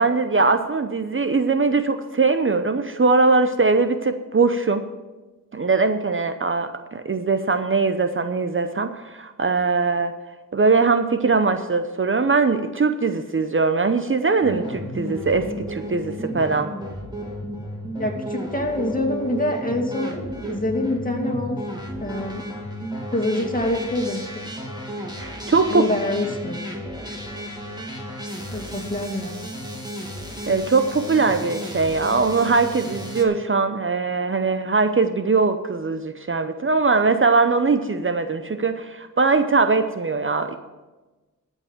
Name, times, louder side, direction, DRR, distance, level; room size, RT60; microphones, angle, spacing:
voice 1, 0.0-4.8 5.5-10.1 10.5-16.7 25.0-25.9 30.5-40.6, right 4 dB, 40° right, 9 dB, 0.7 m, -21 dB
sound 1, 14.4-33.2, equal, 15° right, 2.2 m, -33 dB
voice 2, 18.0-20.2 20.5-21.6 22.0-22.4 23.1-24.2 25.7-26.6 28.5-29.4, left 1 dB, 25° left, 2 dB, 2.1 m, -25 dB
13.5 x 5.4 x 7.2 m, 1.2 s
cardioid pair, 50°, 32 cm